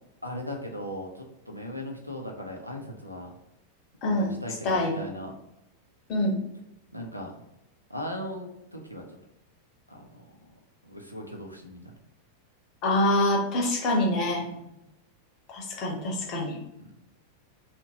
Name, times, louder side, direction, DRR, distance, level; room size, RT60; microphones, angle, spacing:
voice 1, 0.2-3.3 4.0-5.3 6.9-7.4 7.9-9.0 9.9-10.5 10.8-11.9 14.4-14.7 16.8-16.9, equal, 90° right, 2 dB, 0.4 m, -38 dB
voice 2, 4.0-4.3 4.6-5.0 6.1-6.4 12.8-14.4 15.5-16.6, left 1 dB, 35° left, -1 dB, 0.8 m, -25 dB
2.7 x 2.1 x 2.8 m, 0.89 s
figure-of-eight pair, 90°, 0 cm